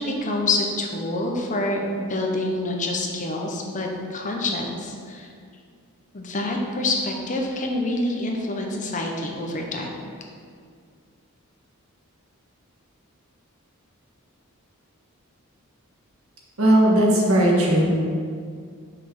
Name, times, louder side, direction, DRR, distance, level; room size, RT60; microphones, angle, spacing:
voice 1, 0.0-5.3 6.1-10.0, left 2 dB, 35° left, 1 dB, 0.8 m, -27 dB
voice 2, 16.6-17.9, right 1 dB, 70° right, -2 dB, 1.5 m, -17 dB
6.0 x 4.9 x 5.9 m, 2.2 s
head